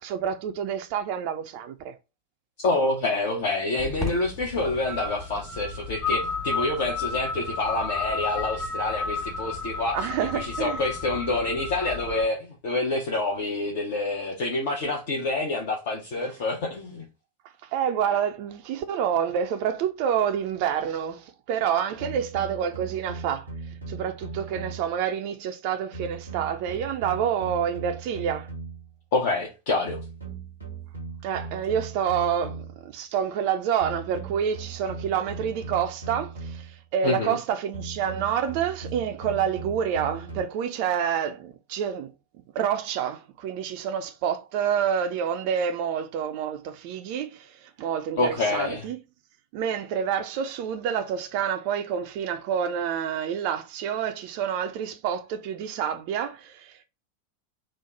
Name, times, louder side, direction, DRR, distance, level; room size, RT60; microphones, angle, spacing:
voice 1, 0.0-1.9 9.9-10.8 17.6-23.5 23.9-28.5 31.2-42.1 42.5-49.0 49.5-56.8, right 8 dB, 45° right, 0.3 m, -28 dB
voice 2, 2.6-10.1 10.3-17.0 29.1-30.0 37.0-37.4 48.2-48.9, left 2 dB, 50° left, 0.7 m, -27 dB
sound 1, 3.8-12.2, left 4 dB, 25° left, 1.3 m, -32 dB
sound 2, 22.0-25.0 25.9-28.9 29.9-32.9 33.8-36.8 37.7-40.4, right 4 dB, 85° left, 1.3 m, -38 dB
3.1 x 2.0 x 3.6 m
figure-of-eight pair, 90°, 0 cm